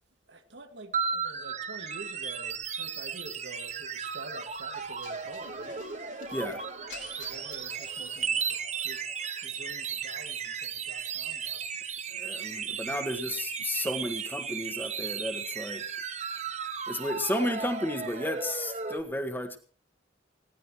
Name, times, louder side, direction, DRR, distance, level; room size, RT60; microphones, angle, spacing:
voice 1, 0.3-5.8 7.2-9.1 9.4-11.7 12.7-13.4, right 2 dB, 80° right, 2.2 m, -47 dB
sound 1, 0.9-19.0, right 6 dB, 40° right, 1.3 m, -35 dB
sound 2, 4.7-8.7, left 5 dB, 85° left, 5.0 m, -50 dB
voice 2, 6.3-6.6 12.1-15.8 16.9-19.6, left 1 dB, 10° left, 1.7 m, -33 dB
20.0 x 17.0 x 3.2 m
head